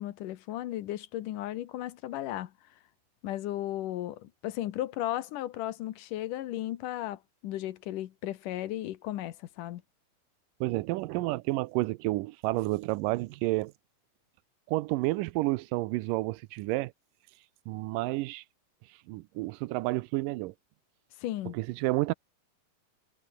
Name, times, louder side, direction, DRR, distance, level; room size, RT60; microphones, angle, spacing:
voice 1, 0.0-2.5 3.2-9.8 21.2-21.6, left 14 dB, 80° left, 2.6 m, -35 dB
voice 2, 10.6-13.7 14.7-16.9 17.7-18.4 19.1-20.5 21.5-22.1, right 20 dB, 90° right, 2.2 m, -30 dB
omnidirectional pair, 3.8 m